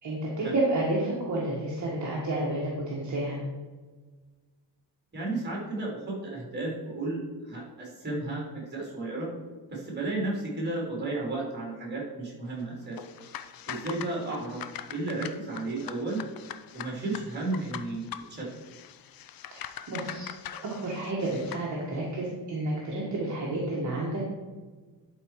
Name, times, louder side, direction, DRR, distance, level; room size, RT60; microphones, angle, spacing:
voice 1, 0.0-3.4 19.9-20.3 20.8-24.3, right 2 dB, 40° right, -4 dB, 1.6 m, -30 dB
voice 2, 5.1-9.3 9.7-13.0 13.7-14.6 14.9-16.2 16.7-18.0 18.3-18.5, right 2 dB, 25° right, -3 dB, 3.0 m, -33 dB
sound 1, 12.9-21.7, left 10 dB, 55° left, 0.5 m, -42 dB
11.5 x 4.6 x 4.7 m, 1.3 s
cardioid pair, 165°, 43 cm